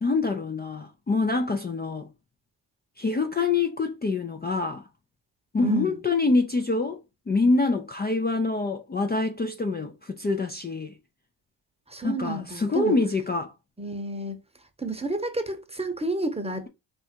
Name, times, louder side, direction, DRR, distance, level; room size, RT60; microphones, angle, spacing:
voice 1, 0.0-2.1 3.0-4.9 5.5-7.0 7.3-10.9 12.0-13.5, left 3 dB, 20° left, 0.5 m, -25 dB
voice 2, 5.6-6.0 11.9-13.0 13.8-14.4 14.8-16.7, right 2 dB, 15° right, 0.9 m, -30 dB
3.3 x 2.6 x 4.4 m
supercardioid pair, 50°, 47 cm